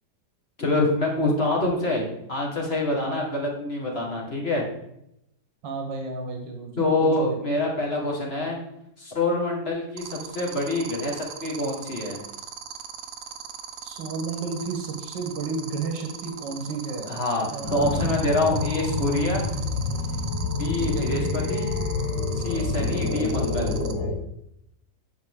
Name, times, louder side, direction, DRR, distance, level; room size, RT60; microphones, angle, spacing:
voice 1, 0.6-4.7 6.8-8.6 9.0-12.2 17.1-19.5 20.6-21.7 22.3-23.7, left 2 dB, 35° left, -1 dB, 1.8 m, -26 dB
voice 2, 5.6-7.4 13.8-17.2 17.5-18.1 20.8-21.3, right 4 dB, 90° right, 3 dB, 1.9 m, -32 dB
sound 1, 10.0-23.9, right 9 dB, 70° right, 1.2 m, -38 dB
sound 2, 17.6-24.1, left 3 dB, 75° left, 2.1 m, -27 dB
9.3 x 5.8 x 3.7 m, 0.80 s
omnidirectional pair, 1.9 m